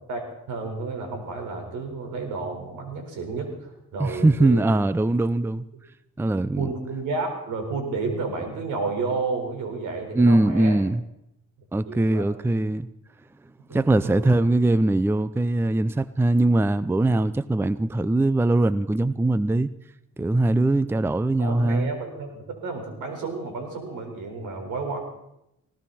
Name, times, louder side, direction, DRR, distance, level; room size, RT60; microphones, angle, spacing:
voice 1, 0.1-4.7 6.6-10.8 11.9-12.3 13.7-14.4 21.4-25.0, right 3 dB, 80° right, 4.7 m, -31 dB
voice 2, 4.0-5.6 6.2-6.7 10.2-11.0 11.7-12.9 13.7-19.7 20.2-21.9, right 2 dB, 10° right, 0.5 m, -21 dB
20.0 x 17.0 x 4.2 m
cardioid pair, 90°, 30 cm